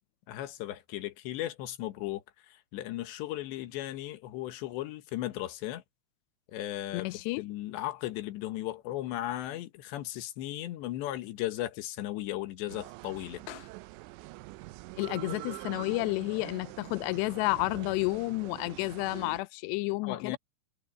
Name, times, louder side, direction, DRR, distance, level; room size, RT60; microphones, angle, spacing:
voice 1, 0.3-5.8 6.5-13.4 20.0-20.4, left 14 dB, 70° left, 3.3 m, -36 dB
voice 2, 6.9-7.4 13.5-13.6 15.0-20.4, left 23 dB, 85° left, 2.4 m, -31 dB
sound 1, 12.7-19.4, right 22 dB, 85° right, 2.6 m, -45 dB
omnidirectional pair, 5.6 m